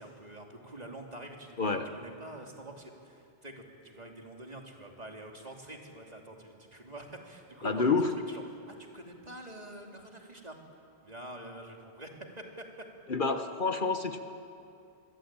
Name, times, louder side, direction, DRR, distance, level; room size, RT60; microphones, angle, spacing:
voice 1, 0.0-7.9 8.3-10.6 11.0-12.6, right 1 dB, 40° right, 1 dB, 2.9 m, -46 dB
voice 2, 7.6-8.1 13.1-14.2, left 4 dB, 50° left, 7 dB, 1.3 m, -28 dB
25.5 x 22.5 x 8.9 m, 2.6 s
omnidirectional pair, 1.1 m